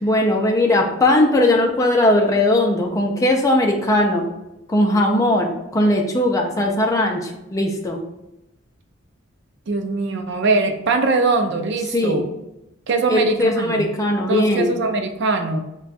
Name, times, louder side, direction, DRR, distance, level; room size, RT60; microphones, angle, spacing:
voice 1, 0.0-4.3 4.7-8.0 11.9-12.2 13.1-14.7, left 1 dB, 15° left, 1 dB, 0.4 m, -19 dB
voice 2, 9.7-12.2 12.9-13.9 14.3-15.6, right 3 dB, 60° right, 6 dB, 0.4 m, -21 dB
3.3 x 2.2 x 4.1 m, 0.90 s
head